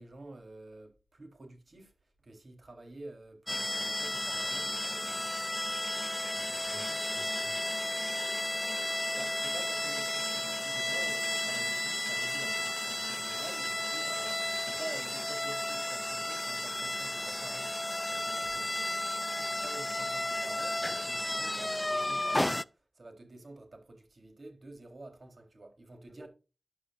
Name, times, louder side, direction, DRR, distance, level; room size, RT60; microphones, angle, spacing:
voice 1, 0.0-1.9 2.2-5.4 9.2-26.3, right 2 dB, 55° right, 3.7 m, -49 dB
sound 1, 3.5-22.6, left 1 dB, 20° left, 0.5 m, -33 dB
voice 2, 6.3-7.8 26.1-26.3, equal, ahead, 4.0 m, -55 dB
13.0 x 11.0 x 2.5 m
wide cardioid pair, 65°, 0 cm